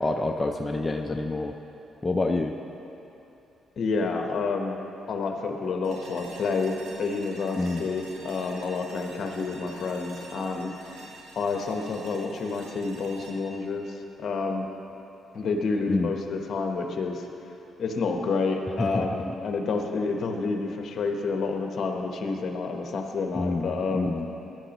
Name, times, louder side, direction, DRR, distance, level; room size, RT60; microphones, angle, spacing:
voice 1, 0.0-1.6 2.0-2.6 7.6-7.9 15.9-16.1 18.8-19.1 23.3-24.3, left 2 dB, 20° left, 3 dB, 0.5 m, -27 dB
voice 2, 3.8-4.8 5.1-11.0 11.3-14.7 15.3-17.3 17.8-24.1, left 4 dB, 55° left, 3 dB, 1.1 m, -29 dB
sound 1, 5.8-14.9, right 2 dB, 90° right, 1.5 m, -47 dB
15.5 x 11.0 x 3.0 m, 3.0 s
cardioid pair, 90°, 0 cm